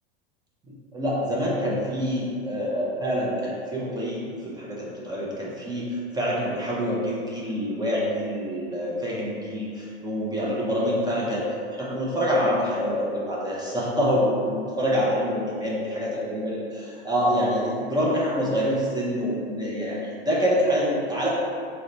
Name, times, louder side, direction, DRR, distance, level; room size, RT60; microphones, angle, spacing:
voice 1, 0.9-21.3, equal, 15° right, -6 dB, 0.5 m, -26 dB
2.9 x 2.2 x 3.8 m, 2.3 s
hypercardioid pair, 105°, 32 cm